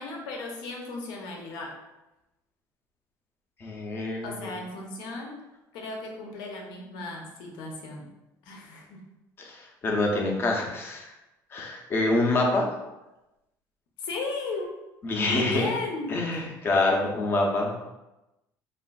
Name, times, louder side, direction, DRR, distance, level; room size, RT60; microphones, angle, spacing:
voice 1, 0.0-1.8 4.2-5.4 5.7-8.1 8.4-9.0 14.0-14.7 15.2-16.2, left 3 dB, 80° left, 1 dB, 0.7 m, -35 dB
voice 2, 3.6-4.6 9.4-11.1 11.5-12.7 15.0-15.7 16.1-17.7, left 2 dB, 35° left, 0 dB, 0.6 m, -26 dB
3.5 x 2.4 x 2.3 m, 0.99 s
cardioid pair, 145°, 7 cm